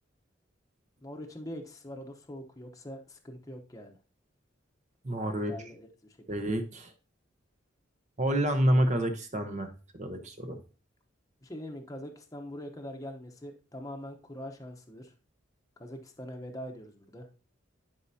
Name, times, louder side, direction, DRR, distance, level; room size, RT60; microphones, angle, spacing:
voice 1, 1.0-4.0 5.3-6.5 11.4-15.1 15.8-17.3, equal, 20° left, 3 dB, 0.9 m, -43 dB
voice 2, 5.0-5.5 6.3-6.9 8.2-9.7 10.0-10.6, right 1 dB, 40° right, 7 dB, 0.9 m, -28 dB
11.5 x 5.4 x 2.8 m, 0.35 s
head